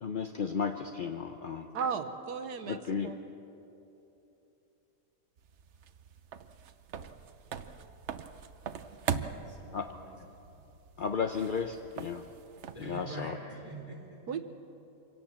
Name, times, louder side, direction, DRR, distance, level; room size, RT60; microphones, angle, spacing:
voice 1, 0.0-1.7 2.7-3.2 9.7-9.9 11.0-12.2 12.9-13.3, left 6 dB, 50° left, 6 dB, 0.6 m, -34 dB
voice 2, 1.7-2.8 3.0-3.2 14.3-14.4, right 6 dB, 75° right, 7 dB, 1.5 m, -34 dB
sound 1, 5.4-13.1, right 7 dB, 55° right, 0.9 m, -41 dB
voice 3, 7.6-8.1 9.2-10.2 10.5-10.6 12.7-14.4, right 2 dB, 20° left, -1 dB, 4.3 m, -46 dB
25.0 x 17.5 x 7.4 m, 2.9 s
omnidirectional pair, 1.8 m